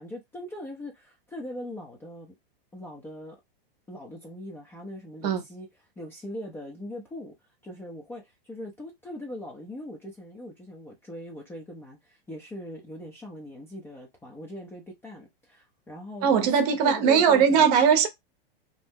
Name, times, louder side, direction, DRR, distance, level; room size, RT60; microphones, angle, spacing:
voice 1, 0.0-2.3 2.7-3.4 3.9-5.7 6.0-7.3 7.6-16.5 16.8-17.7, left 1 dB, 10° left, 0.4 m, -40 dB
voice 2, 16.2-18.1, right 7 dB, 45° right, 0.7 m, -20 dB
2.7 x 2.0 x 3.5 m
hypercardioid pair, 140°, 29 cm